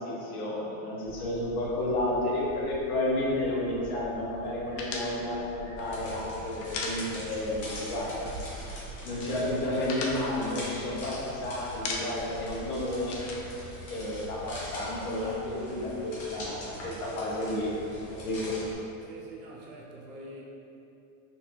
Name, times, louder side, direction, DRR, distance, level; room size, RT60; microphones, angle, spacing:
voice 1, 0.0-8.1 9.0-13.1 13.9-17.7 18.2-18.5, left 1 dB, 80° left, -5 dB, 1.2 m, -31 dB
sound 1, 1.0-15.8, right 2 dB, 80° right, 1.1 m, -47 dB
sound 2, 4.8-7.6 7.8-8.0 8.3-9.0 9.3-11.3 11.6-12.4 12.7-14.5, left 3 dB, 55° left, 0.6 m, -38 dB
sound 3, 5.8-18.7, left 1 dB, 35° left, 1.0 m, -43 dB
voice 2, 19.0-20.4, right 1 dB, 40° right, -3 dB, 0.5 m, -45 dB
4.3 x 2.6 x 2.9 m, 2.8 s
supercardioid pair, 145°, 43 cm